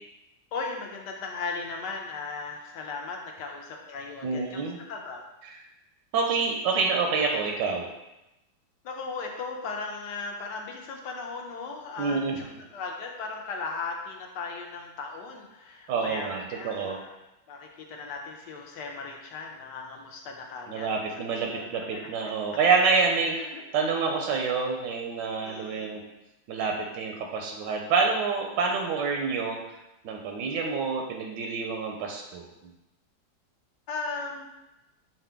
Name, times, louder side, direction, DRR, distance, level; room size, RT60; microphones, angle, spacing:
voice 1, 0.5-5.3 8.8-12.5 12.7-17.1 17.5-21.1 21.5-22.1 23.3-23.6 25.4-25.9 33.9-34.5, left 4 dB, 70° left, 1 dB, 1.2 m, -37 dB
voice 2, 4.2-4.8 6.1-7.9 12.0-12.4 15.9-17.0 20.7-23.4 23.7-26.0 26.5-29.6 30.0-32.5, right 4 dB, 80° right, 1 dB, 1.2 m, -27 dB
4.9 x 2.8 x 3.4 m, 0.95 s
omnidirectional pair, 2.0 m